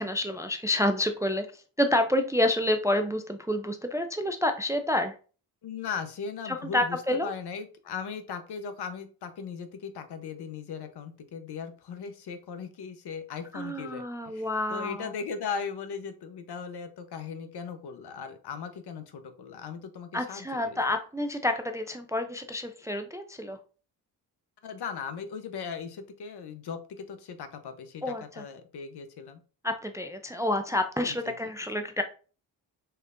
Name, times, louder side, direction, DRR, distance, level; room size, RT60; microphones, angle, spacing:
voice 1, 0.0-1.5 1.8-5.1 6.5-7.3 13.5-15.1 20.1-23.6 28.0-28.4 29.6-32.0, left 1 dB, 5° right, 6 dB, 0.4 m, -28 dB
voice 2, 5.6-20.8 24.6-29.4 31.0-31.4, left 6 dB, 55° left, 9 dB, 0.8 m, -38 dB
4.4 x 3.2 x 2.5 m, 0.38 s
supercardioid pair, 45°, 47 cm